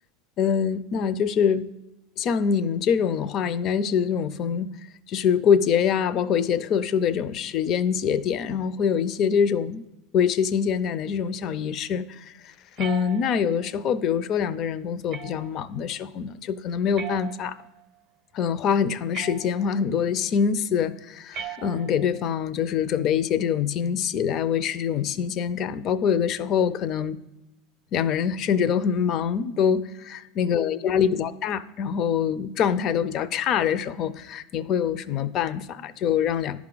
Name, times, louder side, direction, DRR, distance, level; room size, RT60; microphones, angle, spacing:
voice 1, 0.4-1.7 2.2-4.7 5.1-9.8 10.1-12.5 12.8-17.6 18.3-27.2 27.9-36.6, left 7 dB, 45° left, 16 dB, 0.4 m, -24 dB
sound 1, 12.8-13.7 15.1-15.7 17.0-17.8 19.1-19.9 21.3-22.2, right 8 dB, 50° right, 0.6 m, -39 dB
11.0 x 4.8 x 3.9 m, 0.96 s
supercardioid pair, 115°, 0 cm